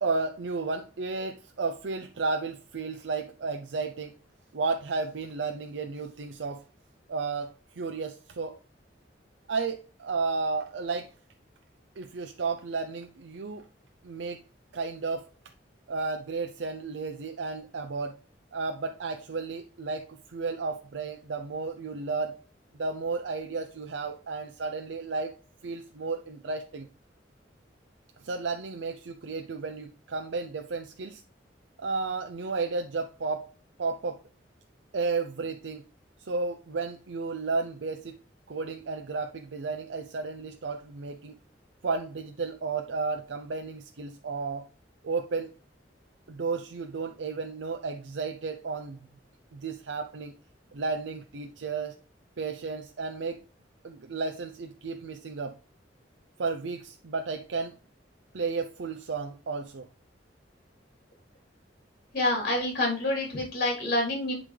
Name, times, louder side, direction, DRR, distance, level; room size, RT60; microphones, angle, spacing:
voice 1, 0.0-4.1 4.5-6.6 7.1-8.6 9.5-11.1 12.0-13.6 14.0-14.4 14.7-15.3 15.9-18.2 18.5-22.4 22.8-25.3 25.6-26.9 28.2-31.2 31.8-33.5 33.8-34.2 34.9-35.9 36.2-38.1 38.5-41.3 41.8-44.7 45.0-45.5 46.3-49.0 49.5-50.3 50.7-51.9 52.4-53.4 53.8-55.6 56.4-57.8 58.3-59.9, right 4 dB, 80° right, 0.6 m, -33 dB
voice 2, 62.1-64.3, left 1 dB, 55° left, 3.2 m, -27 dB
10.5 x 3.9 x 3.3 m
head